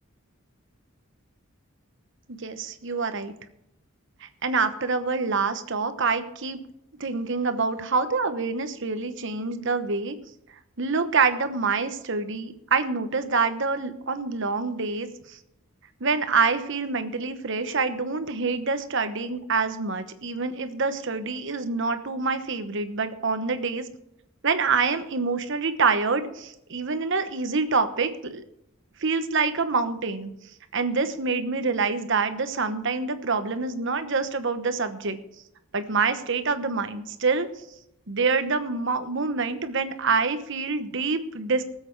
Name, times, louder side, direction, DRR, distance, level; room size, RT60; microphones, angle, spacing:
voice 1, 2.3-3.3 4.2-6.6 7.0-10.2 10.8-15.4 16.0-23.8 24.4-28.4 29.0-30.3 30.7-35.2 35.7-37.5 38.1-41.6, right 4 dB, 60° right, 10 dB, 1.1 m, -26 dB
19.0 x 7.9 x 4.7 m, 0.81 s
head